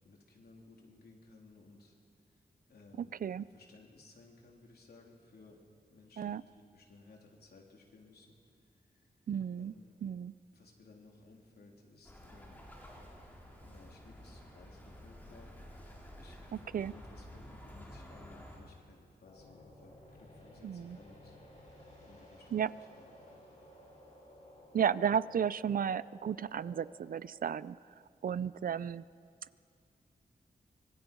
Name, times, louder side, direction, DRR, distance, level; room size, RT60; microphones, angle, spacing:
voice 1, 0.0-1.9 2.3-2.4 2.7-3.1 3.5-5.6 5.9-8.3 8.9-9.1 9.6-10.0 10.5-12.8 13.6-21.4 21.7-23.5, left 3 dB, 85° left, 0 dB, 3.4 m, -59 dB
voice 2, 3.0-3.4 6.2-6.4 9.3-9.7 10.0-10.3 16.5-16.9 20.6-21.0 22.5-22.7 24.7-27.8 28.2-29.0, right 8 dB, 65° right, 18 dB, 0.4 m, -33 dB
Bird, 12.0-18.6, equal, 10° left, 3.7 m, -51 dB
sound 1, 19.2-27.1, left 1 dB, 50° left, 7.1 m, -56 dB
25.0 x 23.5 x 5.4 m, 2.2 s
wide cardioid pair, 180°, 16 cm